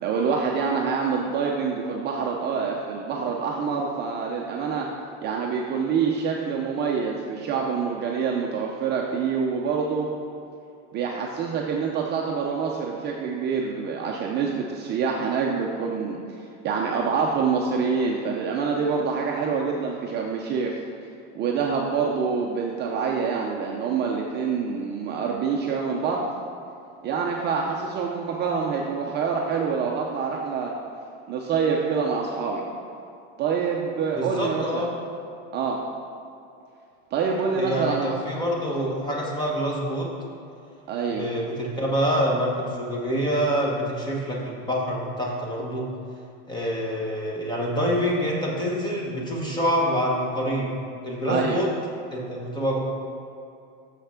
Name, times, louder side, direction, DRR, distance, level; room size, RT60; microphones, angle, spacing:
voice 1, 0.0-4.9 5.2-10.1 10.9-16.2 16.6-20.8 21.3-26.2 27.0-30.7 31.3-32.6 33.4-34.9 35.5-35.8 37.1-38.1 40.9-41.3 51.3-51.6, right 5 dB, 30° right, -1 dB, 0.6 m, -26 dB
voice 2, 34.1-34.9 37.5-40.1 41.1-45.9 46.5-50.7 51.0-51.7 52.1-52.8, equal, 10° left, -2 dB, 1.2 m, -26 dB
6.6 x 5.6 x 5.7 m, 2.6 s
supercardioid pair, 150°, 35 cm